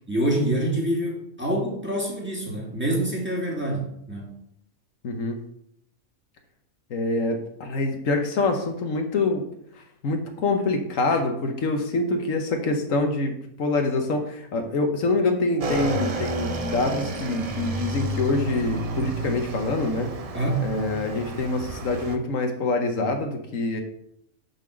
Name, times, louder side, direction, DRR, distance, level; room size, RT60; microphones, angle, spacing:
voice 1, 0.1-4.3 20.3-20.7, right 1 dB, 10° right, -4 dB, 1.9 m, -26 dB
voice 2, 5.0-5.4 6.9-9.5 9.7-20.1 20.6-23.8, left 3 dB, 75° left, 4 dB, 1.3 m, -25 dB
Motorcycle / Engine, 15.6-22.2, right 1 dB, 45° right, 0.5 m, -31 dB
6.6 x 4.2 x 6.2 m, 0.74 s
omnidirectional pair, 1.4 m